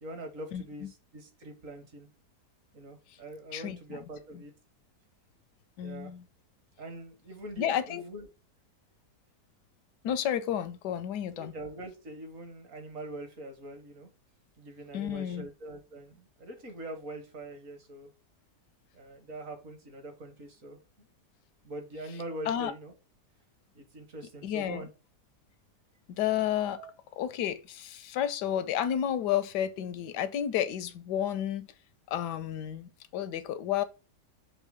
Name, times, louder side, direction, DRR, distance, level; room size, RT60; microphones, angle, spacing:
voice 1, 0.0-2.1 2.7-4.5 5.8-6.1 6.8-8.3 11.4-14.1 14.6-18.1 18.9-21.1 21.6-22.9 23.7-24.9 26.8-26.9, right 1 dB, 55° right, 1.6 m, -43 dB
voice 2, 0.5-0.9 3.1-3.2 3.5-4.0 4.3-4.4 5.8-6.2 7.6-8.0 10.0-11.5 14.9-15.5 22.5-22.7 24.4-24.8 26.1-26.8 27.1-31.7 32.1-33.8, left 10 dB, 85° left, 1.3 m, -31 dB
6.4 x 3.1 x 5.0 m
omnidirectional pair, 1.8 m